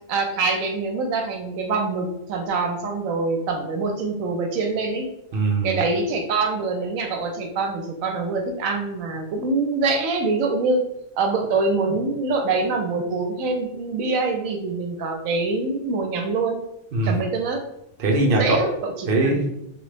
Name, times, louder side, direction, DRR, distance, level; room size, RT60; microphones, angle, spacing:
voice 1, 0.1-5.1 5.6-10.8 11.2-16.6 17.0-17.6 18.3-19.4, right 3 dB, 80° right, 3 dB, 1.0 m, -24 dB
voice 2, 5.3-5.8 16.9-17.2 18.0-18.6 19.1-19.5, right 2 dB, 50° right, -1 dB, 0.8 m, -21 dB
3.1 x 2.4 x 3.2 m, 0.82 s
omnidirectional pair, 1.4 m